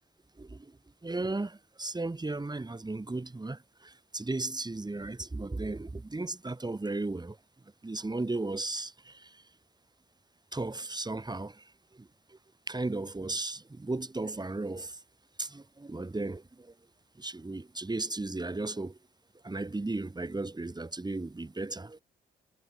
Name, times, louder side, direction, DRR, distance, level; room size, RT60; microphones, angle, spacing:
voice 1, 0.4-0.7 1.0-7.4 7.8-9.4 10.5-12.1 12.7-15.0 15.4-16.7 17.2-19.0 19.4-22.0, right 2 dB, 20° right, 4.4 m, -35 dB
supercardioid pair, 65°, 19 cm